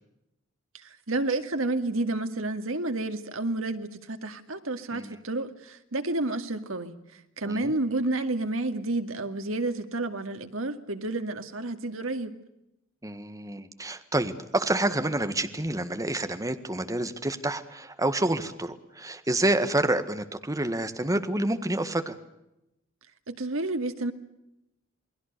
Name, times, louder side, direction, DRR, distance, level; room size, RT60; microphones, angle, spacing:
voice 1, 0.7-7.0 7.4-12.4 23.3-24.1, right 2 dB, 75° right, 7 dB, 2.2 m, -30 dB
voice 2, 13.0-22.2, right 1 dB, 15° right, 8 dB, 1.6 m, -28 dB
28.5 x 21.0 x 6.7 m, 0.87 s
head